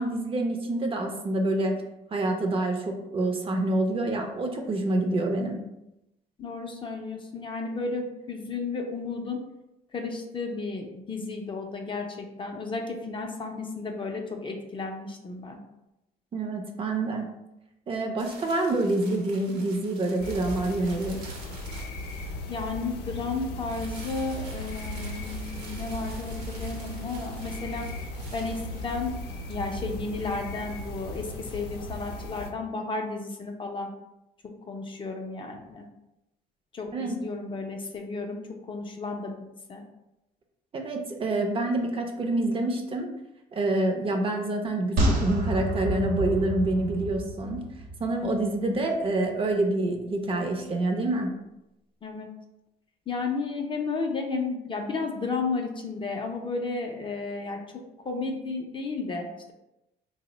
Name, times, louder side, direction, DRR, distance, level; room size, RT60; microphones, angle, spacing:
voice 1, 0.0-1.7 2.1-5.6 16.3-17.3 17.9-21.2 36.9-37.2 40.7-43.1 43.5-47.7 48.0-51.3, right 2 dB, 35° right, 3 dB, 0.5 m, -27 dB
voice 2, 6.4-9.4 9.9-15.6 22.5-27.9 28.3-29.2 29.5-33.9 34.7-35.8 36.7-38.4 38.7-39.4 39.7-39.8 52.0-52.3 53.1-57.6 58.0-59.5, left 3 dB, 30° left, 2 dB, 0.4 m, -33 dB
sound 1, 18.2-22.8 23.7-29.3, right 3 dB, 85° right, 0.7 m, -48 dB
sound 2, 20.2-32.5, left 1 dB, 85° left, 0.5 m, -37 dB
sound 3, 45.0-48.4 48.7-48.8, right 1 dB, 55° right, 0.8 m, -28 dB
2.8 x 2.0 x 3.8 m, 0.91 s
cardioid pair, 110°, 17 cm